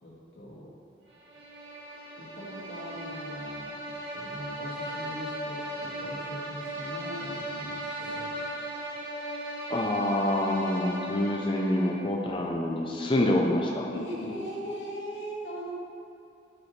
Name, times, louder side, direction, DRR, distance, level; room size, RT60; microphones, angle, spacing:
voice 1, 0.0-0.7 2.2-8.3 13.8-15.7, equal, 90° left, -6 dB, 2.4 m, -40 dB
sound 1, 1.1-12.1, right 1 dB, 90° right, 2.3 m, -37 dB
voice 2, 9.7-13.9, left 1 dB, 30° left, -1 dB, 0.7 m, -26 dB
11.5 x 8.6 x 3.3 m, 2.6 s
head